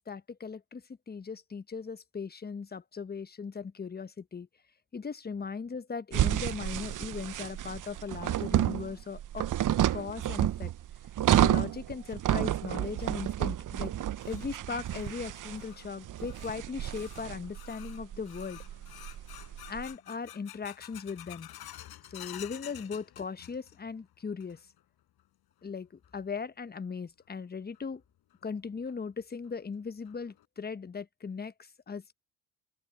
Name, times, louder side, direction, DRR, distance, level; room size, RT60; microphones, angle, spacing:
voice 1, 0.0-4.5 4.9-9.5 9.9-10.7 11.3-13.9 14.3-18.6 19.7-21.5 22.1-24.7 25.6-28.0 28.4-32.1, left 5 dB, 20° left, 1.2 m, -38 dB
sound 1, 6.1-19.9, right 12 dB, 50° right, 1.1 m, -30 dB
sound 2, 13.8-23.9 24.2-24.8 25.2-25.3 26.0-26.1 27.7-27.8 28.3-28.4 28.9-29.0 29.4-29.5 30.1-30.4, left 13 dB, 60° left, 5.2 m, -50 dB
open air
hypercardioid pair, 60°, 42 cm